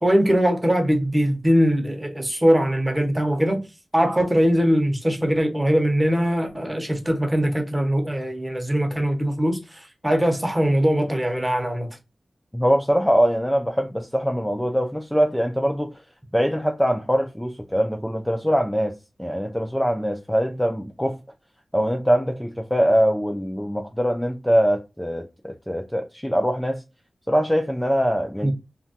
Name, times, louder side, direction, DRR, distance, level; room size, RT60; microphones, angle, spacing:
voice 1, 0.0-3.6 3.9-11.9 28.4-28.5, equal, 15° right, 0.7 m, -21 dB
voice 2, 12.5-15.9 16.3-21.2 21.7-26.8 27.3-28.5, equal, 5° left, 0.3 m, -22 dB
2.9 x 2.2 x 2.7 m
wide cardioid pair, 100°, 0 cm